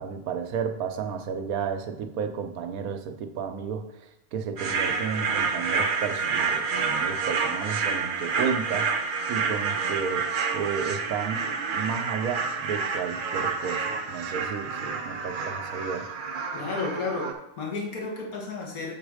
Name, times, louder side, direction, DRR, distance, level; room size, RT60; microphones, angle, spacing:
voice 1, 0.0-10.3 10.5-16.1, right 6 dB, 80° right, 6 dB, 1.2 m, -32 dB
sound 1, 4.6-17.3, right 5 dB, 50° right, 0.7 m, -29 dB
voice 2, 16.5-18.9, left 3 dB, 85° left, -3 dB, 2.0 m, -32 dB
7.6 x 4.0 x 4.9 m, 0.88 s
omnidirectional pair, 1.5 m